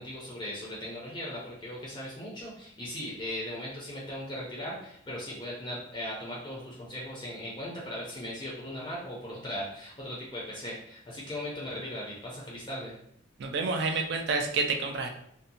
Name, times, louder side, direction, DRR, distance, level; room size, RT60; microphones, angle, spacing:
voice 1, 0.0-13.0, left 1 dB, 20° left, -5 dB, 0.4 m, -38 dB
voice 2, 13.4-15.1, right 4 dB, 55° right, 4 dB, 0.3 m, -29 dB
2.6 x 2.1 x 2.6 m, 0.72 s
head